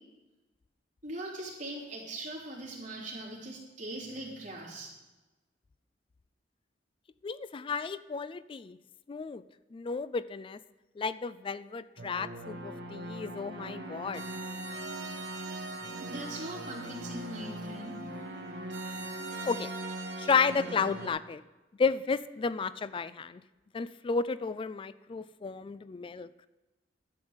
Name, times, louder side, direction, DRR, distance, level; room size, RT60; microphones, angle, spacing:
voice 1, 1.0-4.9 15.4-15.5 16.0-17.9, right 1 dB, 45° right, -4 dB, 3.3 m, -40 dB
voice 2, 7.2-8.8 9.1-9.4 9.7-10.6 11.0-14.2 19.4-19.7 20.2-21.4 21.8-23.4 23.7-26.3, left 5 dB, 30° left, 16 dB, 0.3 m, -32 dB
sound 1, 12.0-21.1, right 2 dB, 70° right, 1.2 m, -40 dB
11.5 x 5.7 x 7.9 m, 1.1 s
head